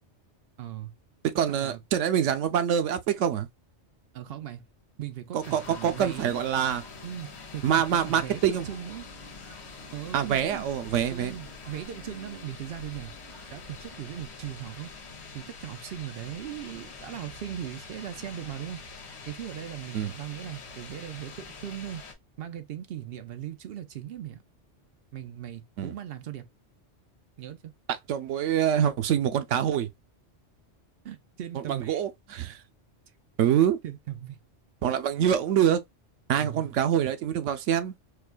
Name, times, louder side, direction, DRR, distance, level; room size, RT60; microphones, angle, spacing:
voice 1, 0.6-0.9 1.3-1.8 4.1-4.6 5.0-6.4 7.0-9.1 9.9-10.7 11.1-13.1 13.5-14.9 15.3-18.8 19.3-22.0 22.4-24.4 25.1-26.5 27.4-27.7 31.0-32.0 33.8-34.4 36.4-36.7, right 11 dB, 60° right, 0.8 m, -38 dB
voice 2, 1.4-3.5 5.3-6.8 7.6-8.7 10.1-11.4 19.9-20.1 25.8-25.9 28.1-29.9 31.7-32.6 33.4-33.8 34.8-35.8 36.3-37.9, right 9 dB, 90° right, 0.9 m, -25 dB
sound 1, 5.4-22.1, left 4 dB, 65° left, 1.2 m, -45 dB
4.6 x 2.2 x 2.4 m
omnidirectional pair, 1.2 m